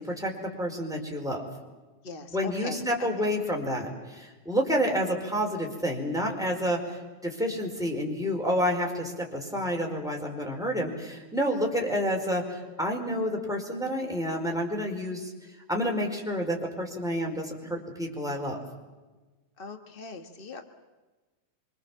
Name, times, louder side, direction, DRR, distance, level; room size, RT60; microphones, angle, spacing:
voice 1, 0.0-1.4 2.3-7.0 7.2-15.3 15.7-18.6, equal, ahead, 2 dB, 4.4 m, -29 dB
voice 2, 2.0-3.3 19.6-20.6, left 4 dB, 80° left, 6 dB, 0.4 m, -41 dB
25.5 x 25.5 x 7.3 m, 1.2 s
omnidirectional pair, 3.8 m